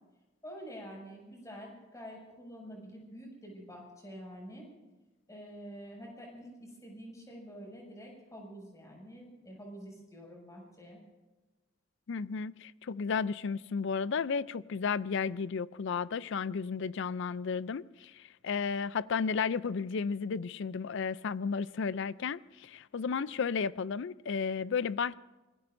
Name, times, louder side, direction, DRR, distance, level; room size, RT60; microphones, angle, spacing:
voice 1, 0.4-4.7 5.3-11.0, equal, 15° left, 6.5 m, -47 dB
voice 2, 12.1-25.2, left 5 dB, 65° left, 0.4 m, -33 dB
26.0 x 20.5 x 2.6 m
head